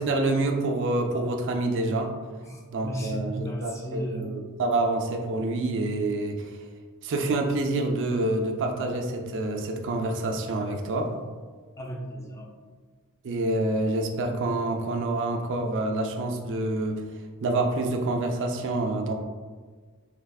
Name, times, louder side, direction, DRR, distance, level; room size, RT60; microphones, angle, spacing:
voice 1, 0.0-2.1 2.7-6.5 7.0-11.1 13.2-17.0 17.4-19.1, right 2 dB, 55° right, 3 dB, 0.4 m, -27 dB
voice 2, 2.4-4.5 11.8-12.5, equal, 15° left, -2 dB, 0.5 m, -35 dB
3.3 x 3.3 x 2.3 m, 1.5 s
head